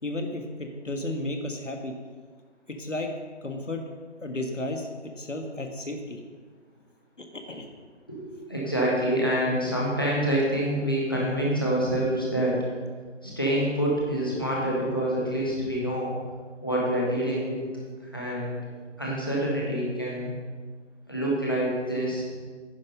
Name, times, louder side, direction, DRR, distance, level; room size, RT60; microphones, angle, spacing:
voice 1, 0.0-1.9 2.7-3.1 3.4-3.8 4.2-4.9 5.2-6.2 7.2-7.6, left 2 dB, 85° left, 4 dB, 1.8 m, -33 dB
voice 2, 8.1-12.5 13.2-16.1 16.6-17.6 18.1-18.6 19.0-20.3 21.1-22.2, right 1 dB, 20° left, -5 dB, 1.4 m, -26 dB
10.0 x 6.8 x 5.4 m, 1.6 s
figure-of-eight pair, 175°, 36 cm